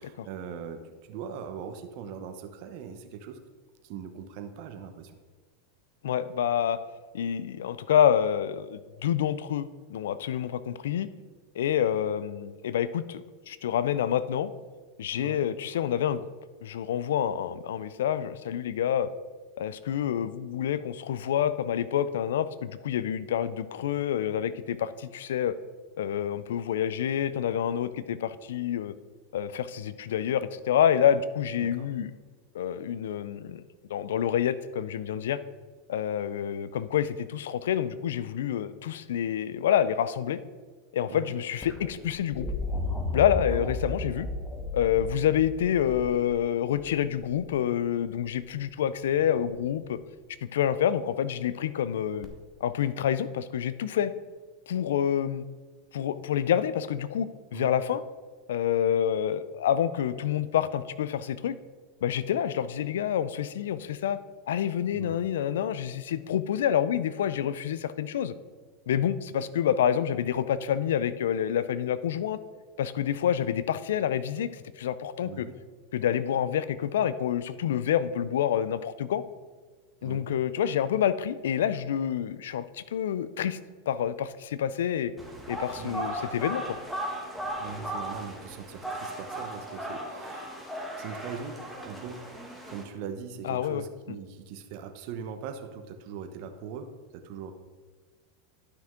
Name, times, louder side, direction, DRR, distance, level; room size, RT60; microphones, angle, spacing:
voice 1, 0.0-3.4 3.8-5.1 15.1-15.4 31.6-31.9 41.1-41.3 43.5-43.7 57.5-57.7 64.9-65.2 75.2-75.6 80.0-80.3 85.7-86.0 87.6-90.6 91.0-92.2 92.6-96.9 97.1-97.5, right 7 dB, 60° right, 7 dB, 0.9 m, -41 dB
voice 2, 6.0-6.8 7.1-11.1 11.6-14.5 15.0-16.2 16.6-19.1 19.6-25.5 26.0-28.9 29.3-32.1 32.5-33.6 33.9-35.4 35.9-40.4 40.9-42.5 43.1-44.3 44.7-50.0 50.4-52.3 52.6-54.1 54.7-55.4 55.9-58.0 58.5-61.5 62.0-64.2 64.5-68.3 68.9-72.4 72.8-75.5 75.9-79.2 80.0-83.6 83.9-85.1 85.5-86.6 93.4-93.9, left 9 dB, 80° left, 15 dB, 0.4 m, -27 dB
sound 1, 41.6-47.5 49.2-49.7 52.2-52.3, left 3 dB, 20° left, 1.2 m, -34 dB
sound 2, 85.2-92.8, right 1 dB, 5° left, 1.8 m, -37 dB
11.5 x 5.9 x 3.7 m, 1.5 s
hypercardioid pair, 115°, 0 cm